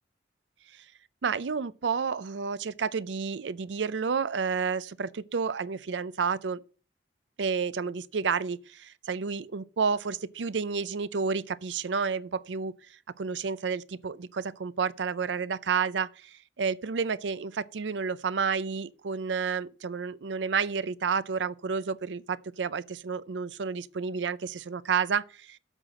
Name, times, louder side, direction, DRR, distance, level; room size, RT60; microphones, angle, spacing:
voice 1, 1.2-6.6 7.4-12.7 13.2-25.6, right 5 dB, 80° right, 0.5 m, -30 dB
8.0 x 5.8 x 6.1 m
head